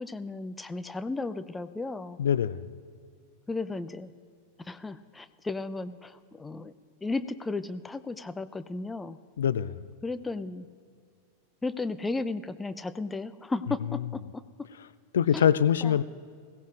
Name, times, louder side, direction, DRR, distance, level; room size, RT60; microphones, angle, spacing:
voice 1, 0.0-2.2 3.5-4.1 4.6-6.7 7.0-9.2 10.0-10.7 11.6-14.4 15.3-15.5 15.8-16.0, left 3 dB, 10° left, 12 dB, 0.5 m, -34 dB
voice 2, 2.2-2.7 9.4-9.9 15.1-16.0, left 9 dB, 65° left, 15 dB, 0.3 m, -24 dB
21.5 x 16.5 x 2.5 m, 2.2 s
figure-of-eight pair, 90°, 0 cm